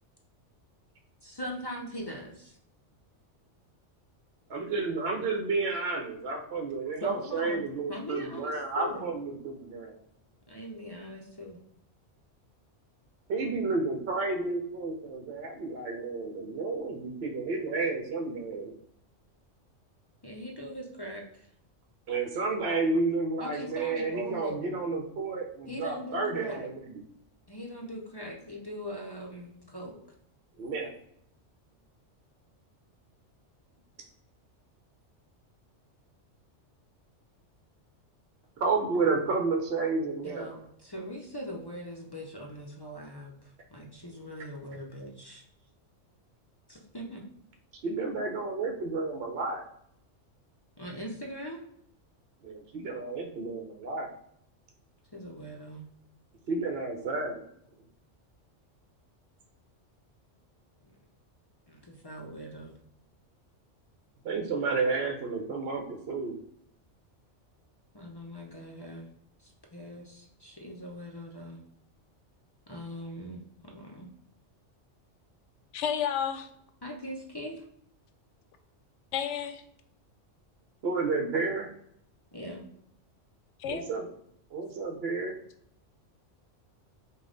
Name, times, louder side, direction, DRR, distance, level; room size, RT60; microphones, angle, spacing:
voice 1, 1.2-2.6 7.0-7.6 7.9-9.1 10.5-11.6 20.2-21.5 23.4-24.6 25.7-26.7 27.5-30.0 40.2-45.4 46.7-47.2 50.8-51.6 55.1-55.8 61.7-62.8 67.9-69.1 69.4-71.6 72.7-74.1 76.8-77.6 82.3-82.6, equal, 35° left, -1 dB, 0.4 m, -40 dB
voice 2, 4.5-10.0 13.3-18.7 22.1-27.0 30.6-30.9 38.6-40.5 47.8-49.6 52.4-54.1 56.5-57.4 64.2-66.4 80.8-81.7 83.7-84.0 84.5-85.4, right 3 dB, 65° right, 3 dB, 0.8 m, -31 dB
voice 3, 75.7-76.5 79.1-79.6 83.6-83.9, left 8 dB, 75° left, 8 dB, 0.9 m, -31 dB
5.1 x 2.3 x 3.7 m, 0.70 s
omnidirectional pair, 1.2 m